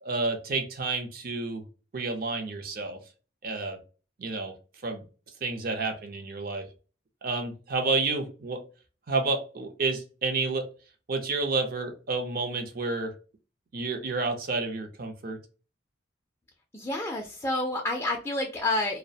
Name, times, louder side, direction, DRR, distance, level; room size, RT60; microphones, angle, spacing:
voice 1, 0.0-1.6 1.9-3.0 3.4-3.8 4.2-4.5 4.8-5.0 5.4-6.7 7.2-8.6 9.1-10.7 11.1-13.1 13.7-15.4, right 3 dB, 50° right, 5 dB, 0.5 m, -30 dB
voice 2, 16.7-19.0, left 2 dB, 15° left, 0 dB, 0.3 m, -29 dB
2.4 x 2.1 x 2.6 m, 0.35 s
head